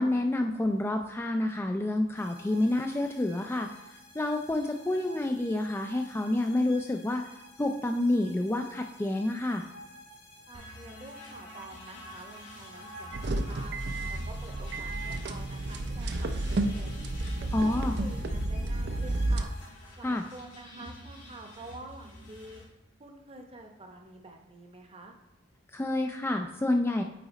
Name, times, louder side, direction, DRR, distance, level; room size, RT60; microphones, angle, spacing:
voice 1, 0.0-3.7 4.1-7.2 7.6-9.7 17.5-18.0 20.0-20.2 25.7-27.0, left 1 dB, 10° left, 4 dB, 0.3 m, -28 dB
sound 1, 2.1-19.7, equal, 55° left, 1.5 m, -51 dB
sound 2, 10.5-22.6, equal, 85° left, 2.3 m, -49 dB
voice 2, 10.5-13.8 14.1-16.4 16.7-17.0 17.4-19.5 20.0-22.6 23.0-25.1, right 2 dB, 30° right, 3 dB, 0.8 m, -48 dB
sound 3, 13.1-19.4, right 2 dB, 60° right, 0.5 m, -31 dB
8.7 x 4.0 x 4.1 m, 0.94 s
head